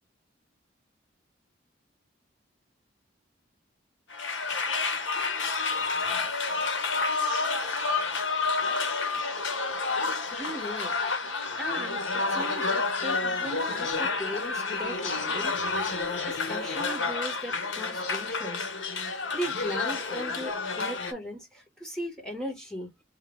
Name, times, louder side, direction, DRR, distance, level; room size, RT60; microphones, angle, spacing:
sound 1, 4.1-21.1, left 4 dB, 80° left, 1.1 m, -29 dB
voice 1, 10.3-11.0 11.6-15.6 16.3-18.7 19.3-22.9, equal, 5° left, 1.9 m, -38 dB
3.5 x 2.8 x 3.5 m
head